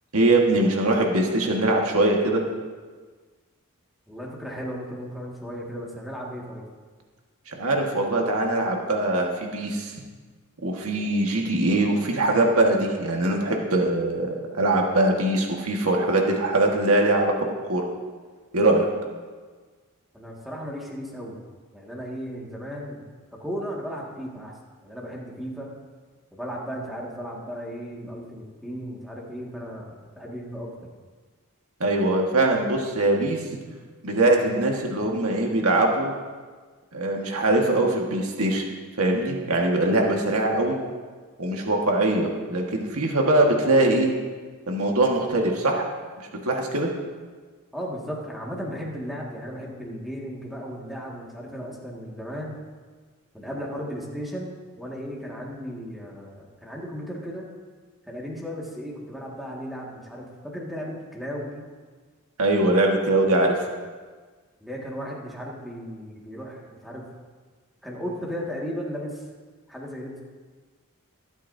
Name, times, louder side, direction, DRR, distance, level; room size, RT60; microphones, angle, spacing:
voice 1, 0.1-2.4 7.5-9.9 10.6-17.3 17.6-17.8 18.5-18.9 31.8-33.4 34.0-36.1 36.9-38.6 39.0-40.8 41.4-44.1 44.7-45.9 46.2-46.9 62.4-63.7, right 2 dB, 75° right, 1 dB, 1.6 m, -22 dB
voice 2, 4.1-6.6 20.1-21.4 21.7-23.0 23.4-24.5 24.8-25.7 26.3-30.9 47.7-52.6 53.3-57.4 58.1-61.6 64.6-67.1 67.8-69.2 69.7-70.2, equal, ahead, -4 dB, 1.9 m, -35 dB
23.0 x 8.2 x 2.7 m, 1.5 s
head